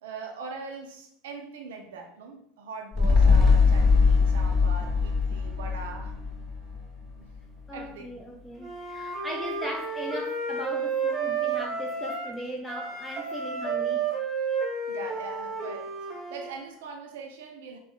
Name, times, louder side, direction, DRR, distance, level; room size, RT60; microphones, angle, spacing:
voice 1, 0.0-6.2 7.2-7.3 7.7-8.2 14.9-17.8, right 4 dB, 70° right, 0.4 m, -41 dB
sound 1, 2.9-7.4 7.8-7.9, left 4 dB, 25° left, 0.7 m, -22 dB
voice 2, 7.7-14.1, equal, 5° left, 0.3 m, -38 dB
Wind instrument woodwind instrument, 8.6-12.4 12.7-16.5, right 5 dB, 25° right, 1.0 m, -31 dB
3.5 x 2.1 x 2.3 m
figure-of-eight pair, 75°, 0 cm